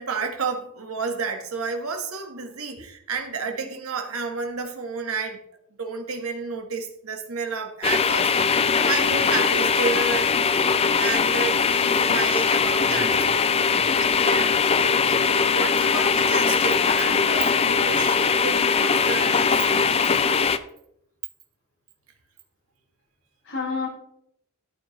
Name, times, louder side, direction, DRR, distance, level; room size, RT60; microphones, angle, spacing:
voice 1, 0.0-5.4 5.8-8.3 8.8-10.3 11.0-13.6 14.0-14.6 15.1-20.1, right 4 dB, 70° right, 1.5 m, -31 dB
sound 1, 7.8-20.6, left 5 dB, 25° left, 0.4 m, -21 dB
voice 2, 13.7-14.3 23.4-23.9, left 4 dB, 60° left, 4.9 m, -32 dB
13.0 x 8.7 x 3.2 m
head